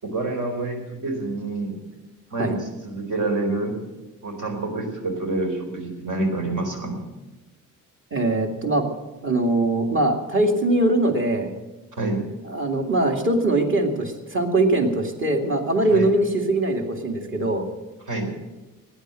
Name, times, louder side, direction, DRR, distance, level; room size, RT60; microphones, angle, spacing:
voice 1, 0.0-1.8 2.3-3.8 4.2-7.0 12.0-12.2 15.9-16.1 18.1-18.3, right 2 dB, 70° right, 3 dB, 4.2 m, -27 dB
voice 2, 8.1-8.9 9.2-11.5 12.5-17.7, right 2 dB, 40° right, 3 dB, 2.3 m, -22 dB
15.5 x 10.0 x 7.7 m, 1.1 s
cardioid pair, 125°, 32 cm